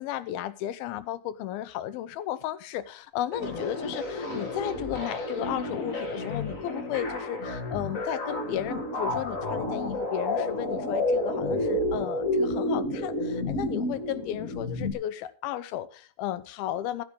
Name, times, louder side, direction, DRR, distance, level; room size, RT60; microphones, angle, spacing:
voice 1, 0.0-17.0, left 12 dB, 80° left, 2.5 m, -34 dB
sound 1, 3.3-14.9, left 1 dB, 65° left, 0.8 m, -30 dB
14.5 x 9.6 x 3.7 m
omnidirectional pair, 4.5 m